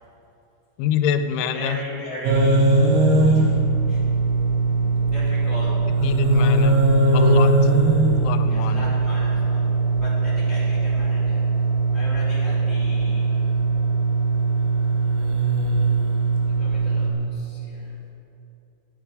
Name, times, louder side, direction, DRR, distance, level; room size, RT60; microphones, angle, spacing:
voice 1, 0.8-1.8 6.0-6.8 7.1-7.7 8.2-8.9, left 8 dB, 90° left, 10 dB, 3.0 m, -26 dB
voice 2, 1.5-3.5 3.9-4.0 5.0-5.7 8.5-9.7 9.9-13.3 16.4-17.9, equal, 15° right, -9 dB, 2.8 m, -38 dB
sound 1, 2.2-17.1, right 3 dB, 70° right, 3.1 m, -20 dB
13.5 x 9.8 x 5.1 m, 2.8 s
omnidirectional pair, 5.2 m